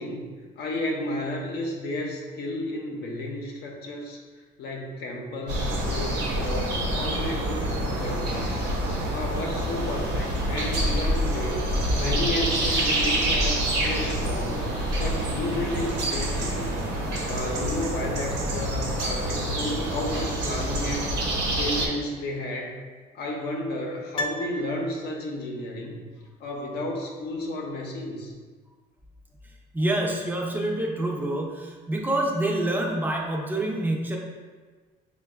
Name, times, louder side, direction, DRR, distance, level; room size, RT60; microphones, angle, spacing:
voice 1, 0.0-4.2 4.6-8.6 9.1-11.6 11.9-16.8 17.2-21.2 21.6-22.7 23.1-26.0 26.4-28.4, left 1 dB, 70° left, -1 dB, 0.7 m, -32 dB
sound 1, 5.5-21.9, right 1 dB, 75° right, 0.9 m, -27 dB
Piano, 24.1-25.4 25.7-25.8, left 1 dB, 30° left, 0.4 m, -34 dB
voice 2, 29.4-34.2, right 1 dB, 10° right, -1 dB, 0.6 m, -27 dB
6.1 x 2.3 x 2.3 m, 1.4 s
cardioid pair, 110°, 17 cm